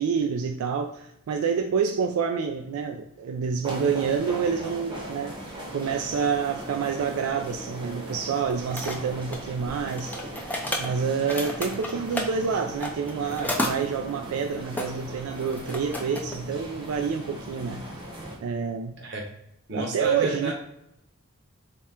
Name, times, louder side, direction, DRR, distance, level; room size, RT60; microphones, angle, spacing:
voice 1, 0.0-5.4 5.7-10.5 10.8-17.8 18.4-18.9 19.7-20.5, right 6 dB, 85° right, 5 dB, 0.3 m, -28 dB
sound 1, 3.6-18.4, right 1 dB, 25° right, 0.8 m, -38 dB
sound 2, 8.5-9.4 9.9-12.3 12.8-13.7 14.8-14.9 15.3-16.3, left 1 dB, 10° left, 0.4 m, -31 dB
voice 2, 19.7-20.5, right 1 dB, 55° right, 1 dB, 0.9 m, -32 dB
3.6 x 2.1 x 4.3 m, 0.81 s
head